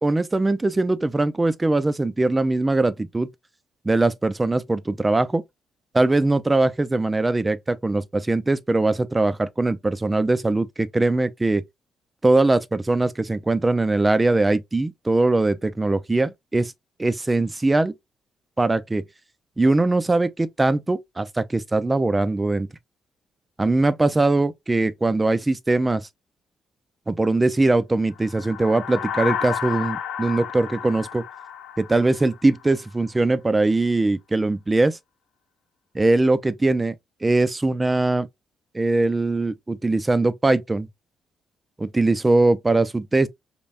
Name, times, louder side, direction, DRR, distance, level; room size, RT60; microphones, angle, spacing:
voice 1, 0.0-3.3 3.8-5.4 5.9-11.6 12.2-16.7 17.0-17.9 18.6-19.0 19.6-22.7 23.6-26.1 27.1-31.2 31.8-35.0 35.9-36.9 37.2-38.3 38.7-40.9 41.8-43.3, right 2 dB, 20° right, 0.5 m, -21 dB
sound 1, 28.2-32.7, left 9 dB, 80° left, 0.9 m, -31 dB
5.4 x 2.2 x 2.4 m
cardioid pair, 90°, 0 cm